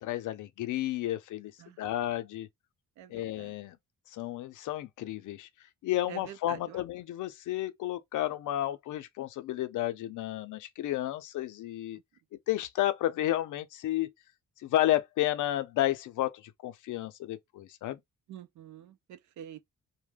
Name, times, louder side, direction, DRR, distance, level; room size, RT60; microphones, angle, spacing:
voice 1, 0.0-1.5 1.8-2.5 3.1-3.8 4.1-5.5 5.8-12.0 12.5-14.1 14.6-18.0, left 14 dB, 80° left, 0.5 m, -32 dB
voice 2, 3.0-3.6 6.1-6.8 18.3-19.6, right 10 dB, 70° right, 0.5 m, -47 dB
2.2 x 2.1 x 3.2 m
cardioid pair, 150°, 30 cm